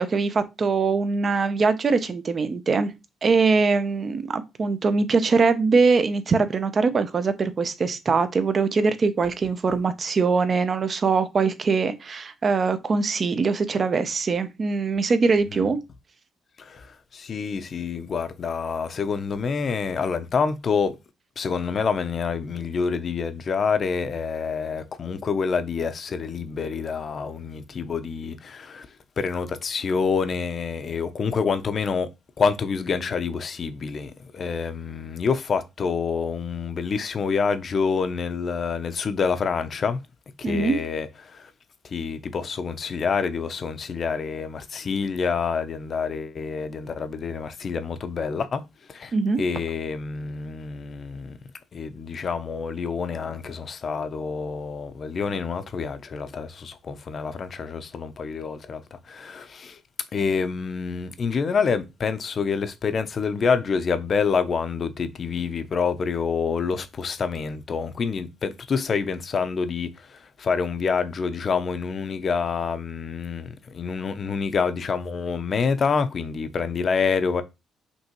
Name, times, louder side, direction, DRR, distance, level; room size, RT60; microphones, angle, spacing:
voice 1, 0.0-2.9 3.2-15.8 40.4-40.8 49.1-49.4, right 4 dB, 40° right, 0.6 m, -22 dB
voice 2, 16.6-21.0 21.4-28.9 29.2-32.1 32.4-40.0 40.4-41.5 41.8-48.6 48.9-51.4 51.7-59.8 60.1-77.4, left 5 dB, 45° left, 0.6 m, -27 dB
5.4 x 3.0 x 2.9 m
cardioid pair, 90°, 0 cm